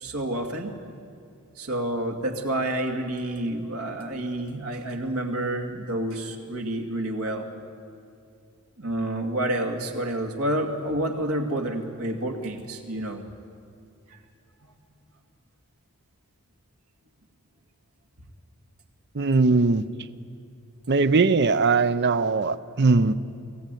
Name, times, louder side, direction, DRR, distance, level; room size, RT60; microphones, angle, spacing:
voice 1, 0.0-0.7 1.6-7.5 8.8-13.2 22.8-23.1, right 1 dB, 70° right, 3 dB, 2.3 m, -29 dB
voice 2, 19.1-19.8 20.9-23.1, right 4 dB, 50° right, 14 dB, 0.6 m, -20 dB
24.0 x 15.5 x 9.2 m, 2.5 s
head